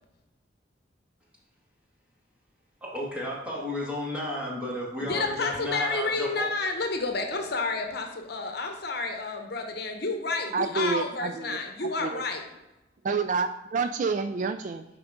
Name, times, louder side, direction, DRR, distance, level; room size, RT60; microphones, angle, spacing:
voice 1, 2.8-6.5, left 1 dB, 5° right, -5 dB, 1.9 m, -33 dB
voice 2, 5.0-12.5, left 3 dB, 55° left, 4 dB, 1.0 m, -30 dB
voice 3, 10.5-12.2 13.0-14.8, right 4 dB, 40° right, 9 dB, 0.3 m, -29 dB
7.8 x 5.0 x 3.7 m, 1.0 s
head